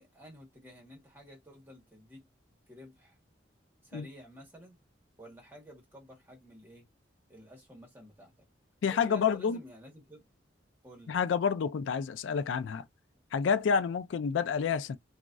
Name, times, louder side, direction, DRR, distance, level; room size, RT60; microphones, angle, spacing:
voice 1, 0.0-2.3 2.7-3.2 3.8-4.8 5.2-6.9 7.3-8.4 8.9-10.2 10.8-11.2, equal, 10° right, 1.5 m, -52 dB
voice 2, 8.8-9.6 11.1-12.8 13.3-15.0, left 6 dB, 90° left, 0.4 m, -29 dB
3.0 x 2.4 x 2.5 m
head